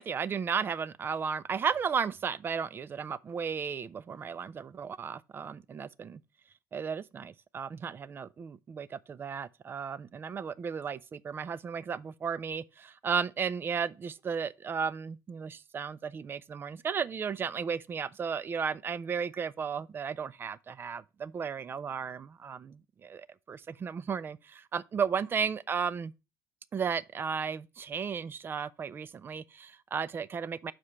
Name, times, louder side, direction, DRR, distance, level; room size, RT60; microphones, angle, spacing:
voice 1, 0.0-6.2 6.7-26.1 26.7-30.7, right 6 dB, 30° right, 0.4 m, -34 dB
5.9 x 4.9 x 5.4 m
supercardioid pair, 100°, 7 cm